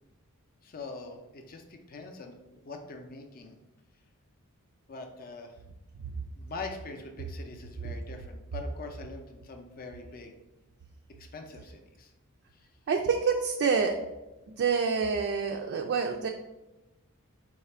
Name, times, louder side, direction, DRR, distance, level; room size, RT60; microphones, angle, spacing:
voice 1, 0.6-3.5 4.9-5.6 6.3-10.4 11.2-12.1 12.5-12.7, left 3 dB, 40° left, 4 dB, 0.4 m, -43 dB
voice 2, 12.9-14.0 14.5-16.3, right 5 dB, 50° right, 3 dB, 0.3 m, -27 dB
4.3 x 2.4 x 4.2 m, 1.0 s
head